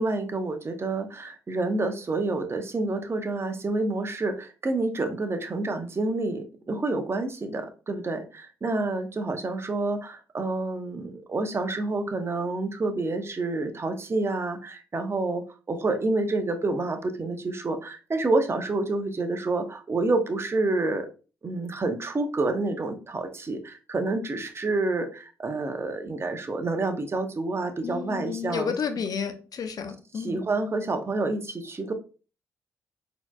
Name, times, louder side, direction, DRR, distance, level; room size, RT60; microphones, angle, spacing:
voice 1, 0.0-21.1 21.4-28.7 30.1-31.9, right 2 dB, 35° right, 6 dB, 0.8 m, -28 dB
voice 2, 27.8-30.4, left 6 dB, 55° left, 8 dB, 0.6 m, -31 dB
4.1 x 2.9 x 2.4 m, 0.34 s
supercardioid pair, 55°, 7 cm